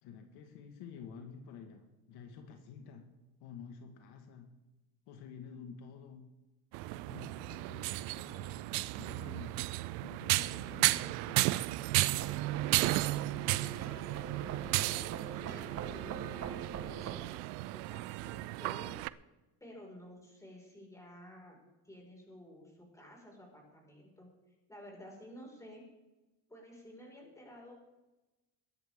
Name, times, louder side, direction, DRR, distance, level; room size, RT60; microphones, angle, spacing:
voice 1, 0.0-3.1 3.4-4.5 5.1-6.3 6.9-11.7, left 6 dB, 75° left, 5 dB, 1.9 m, -50 dB
sound 1, 6.7-19.1, right 19 dB, 85° right, 0.6 m, -34 dB
sound 2, 12.1-17.2, right 7 dB, 40° right, 1.4 m, -44 dB
voice 2, 12.7-18.9 19.6-24.3 24.7-25.8 26.5-27.7, equal, 10° left, -1 dB, 5.3 m, -53 dB
21.5 x 10.5 x 3.7 m, 1.1 s
cardioid pair, 135°, 39 cm